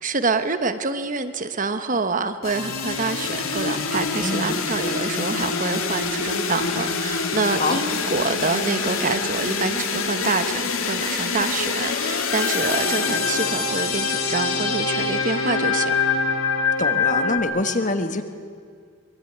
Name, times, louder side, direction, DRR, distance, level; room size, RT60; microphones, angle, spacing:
voice 1, 0.0-15.9, right 4 dB, 40° right, 10 dB, 1.1 m, -26 dB
sound 1, 2.4-17.4, left 4 dB, 80° left, 2.6 m, -25 dB
voice 2, 4.1-4.6 7.6-7.8 16.8-18.2, left 2 dB, 35° left, 8 dB, 1.4 m, -25 dB
24.0 x 22.0 x 9.3 m, 2.1 s
head